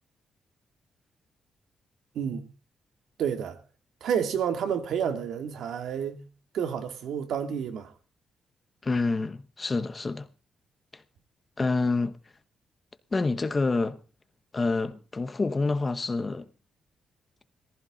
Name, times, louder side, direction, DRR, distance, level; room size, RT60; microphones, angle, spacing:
voice 1, 2.1-2.5 3.2-3.6 4.0-6.2 6.5-7.9, right 8 dB, 75° right, 2.5 m, -30 dB
voice 2, 8.8-10.3 10.9-11.0 11.6-12.2 13.1-14.0 14.5-16.5, left 3 dB, 20° left, 1.0 m, -27 dB
18.0 x 15.0 x 3.9 m
cardioid pair, 165°, 0 cm